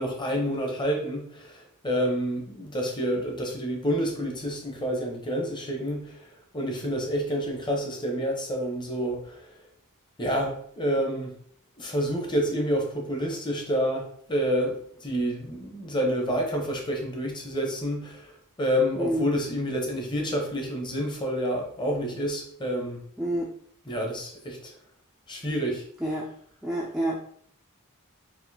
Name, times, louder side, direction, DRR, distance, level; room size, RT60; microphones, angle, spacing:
voice 1, 0.0-9.6 10.2-11.3 11.8-23.0 23.9-24.7 25.3-25.8, equal, 20° left, 1 dB, 0.8 m, -28 dB
voice 2, 23.2-23.5 26.0-26.3 26.6-27.2, right 1 dB, ahead, -4 dB, 0.4 m, -28 dB
4.2 x 2.5 x 2.7 m, 0.62 s
head